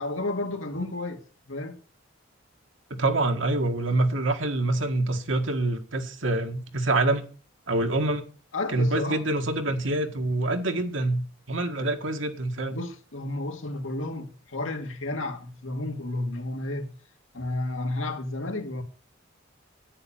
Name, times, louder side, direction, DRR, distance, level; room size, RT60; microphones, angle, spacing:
voice 1, 0.0-1.8 8.5-9.2 11.8-11.9 12.7-16.9 17.3-18.8, left 2 dB, 85° left, 2.0 m, -32 dB
voice 2, 2.9-7.2 7.7-8.2 8.7-11.2 11.5-12.8, right 2 dB, 75° right, 1.8 m, -26 dB
9.9 x 8.7 x 7.3 m
head